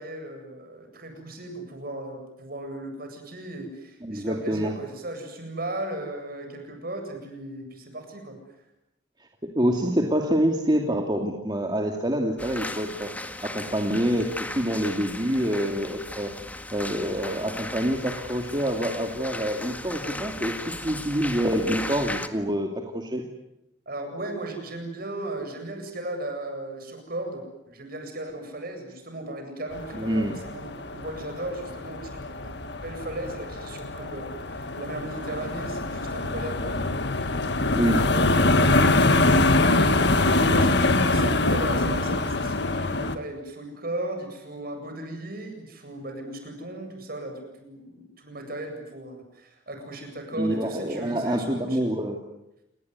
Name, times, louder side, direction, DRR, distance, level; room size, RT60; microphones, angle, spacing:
voice 1, 0.0-8.4 23.9-37.3 37.6-39.6 39.8-51.9, right 1 dB, 55° right, 5 dB, 8.0 m, -36 dB
voice 2, 4.0-4.7 9.4-13.1 13.4-16.3 16.7-23.2 29.9-30.3 37.8-38.0 50.4-52.2, equal, 25° right, 2 dB, 2.6 m, -26 dB
sound 1, 12.4-22.3, left 1 dB, 10° left, 1.8 m, -36 dB
sound 2, 29.7-43.2, left 2 dB, 65° left, 1.9 m, -24 dB
29.0 x 20.5 x 9.6 m, 0.87 s
head